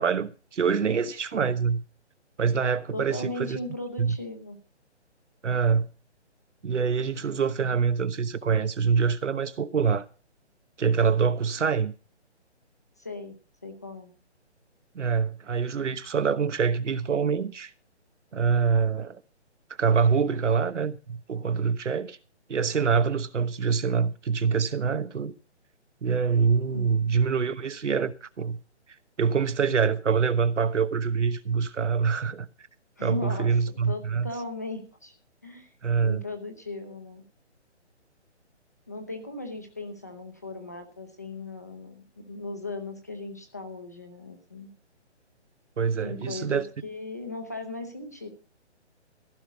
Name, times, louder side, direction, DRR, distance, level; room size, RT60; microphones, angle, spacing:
voice 1, 0.0-1.8 2.4-3.6 4.0-4.2 5.4-5.9 6.6-10.0 10.8-11.9 14.9-17.7 18.3-19.2 19.8-22.2 22.5-25.3 26.0-28.6 29.2-32.5 33.0-34.3 35.8-36.2 45.8-46.6, right 6 dB, 80° right, 1.2 m, -25 dB
voice 2, 2.9-4.6 13.0-13.3 13.6-14.1 26.7-27.2 33.0-33.6 33.8-35.1 35.4-35.7 36.0-37.2 38.9-44.7 46.0-48.3, left 2 dB, 15° left, 0.8 m, -37 dB
15.5 x 5.3 x 8.2 m
hypercardioid pair, 180°, 35 cm